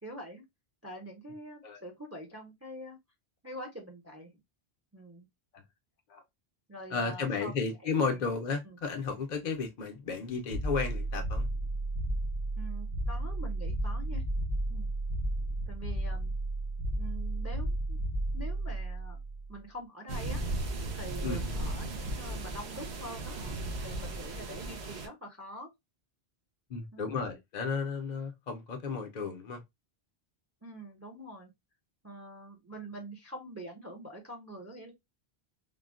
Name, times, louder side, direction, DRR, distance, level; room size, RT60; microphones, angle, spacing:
voice 1, 0.0-0.4 0.8-3.0 3.4-4.3 4.9-5.3 6.7-7.5 7.8-8.2 8.6-8.8 12.6-14.2 14.7-14.9 15.7-16.3 17.0-18.0 18.3-19.2 19.5-20.4 20.9-23.3 23.8-25.7 26.9-27.2 30.6-31.5 32.0-34.9, equal, 15° right, 0.6 m, -45 dB
voice 2, 6.9-11.5 21.2-21.6 26.7-29.6, left 5 dB, 50° left, 0.6 m, -33 dB
sound 1, 10.5-19.6, right 1 dB, 55° right, 1.1 m, -33 dB
sound 2, 20.1-25.1, right 2 dB, 80° right, 1.0 m, -36 dB
3.7 x 2.1 x 2.4 m
omnidirectional pair, 1.1 m